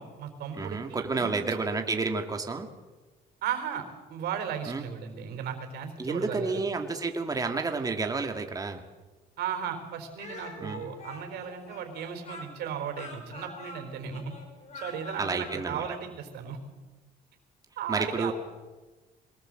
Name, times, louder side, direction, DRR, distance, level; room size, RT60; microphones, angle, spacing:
voice 1, 0.0-1.6 3.4-6.6 9.4-14.2 14.7-16.6 17.8-18.3, right 8 dB, 75° right, 4 dB, 4.2 m, -36 dB
voice 2, 0.6-2.7 4.7-4.8 6.0-8.8 10.6-10.8 15.2-15.8 17.9-18.3, right 4 dB, 20° right, 4 dB, 2.1 m, -30 dB
Speech, 10.2-15.7, left 2 dB, 45° left, 6.5 m, -44 dB
23.0 x 19.5 x 7.8 m, 1.2 s
cardioid pair, 110°, 17 cm